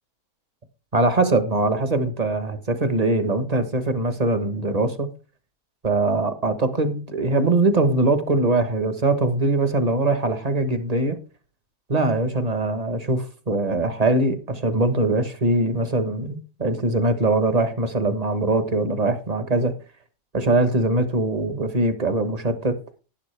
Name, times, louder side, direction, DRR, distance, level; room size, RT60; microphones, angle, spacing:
voice 1, 0.9-5.1 5.8-11.2 11.9-19.7 20.3-22.8, right 2 dB, 30° right, 1.1 m, -22 dB
11.5 x 11.0 x 3.4 m
omnidirectional pair, 1.6 m